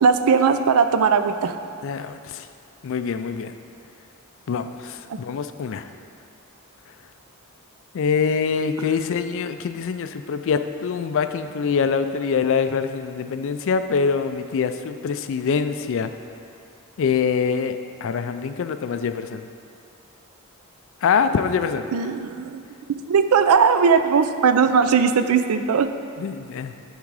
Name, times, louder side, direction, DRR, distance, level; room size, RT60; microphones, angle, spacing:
voice 1, 0.0-1.5 5.1-5.2 21.9-22.6 23.1-25.9, right 6 dB, 75° right, 9 dB, 0.4 m, -18 dB
voice 2, 1.8-2.5 2.8-3.5 4.5-5.9 7.9-16.1 17.0-19.4 21.0-21.9 26.2-26.7, left 6 dB, 60° left, 10 dB, 0.3 m, -24 dB
10.5 x 3.7 x 4.7 m, 2.4 s
head